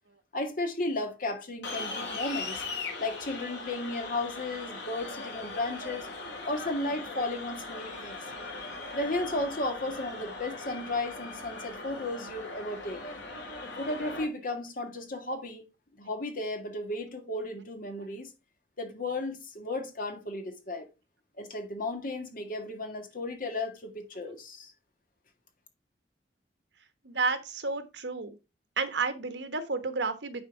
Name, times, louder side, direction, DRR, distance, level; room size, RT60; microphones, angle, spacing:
voice 1, 0.3-2.6 3.0-6.1 6.4-8.2 8.9-13.0 13.8-15.7 16.0-18.3 18.8-20.9 21.4-24.7, left 2 dB, 50° left, 2.0 m, -34 dB
sound 1, 1.6-14.2, left 3 dB, 85° left, 3.4 m, -39 dB
voice 2, 27.0-28.3 28.8-30.4, right 4 dB, 80° right, 1.3 m, -31 dB
9.3 x 4.6 x 4.5 m
head